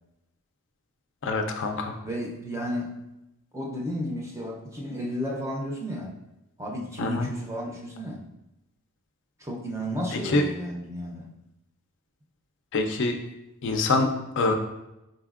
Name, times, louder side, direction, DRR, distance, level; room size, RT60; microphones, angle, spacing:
voice 1, 1.2-1.9 7.0-7.3 10.3-10.4 12.7-13.1 13.6-14.1 14.4-14.5, left 3 dB, 55° left, 4 dB, 0.4 m, -24 dB
voice 2, 2.0-2.9 3.5-6.1 6.6-8.2 9.4-11.3, equal, 15° right, -1 dB, 0.5 m, -33 dB
4.2 x 4.0 x 2.4 m, 0.93 s
head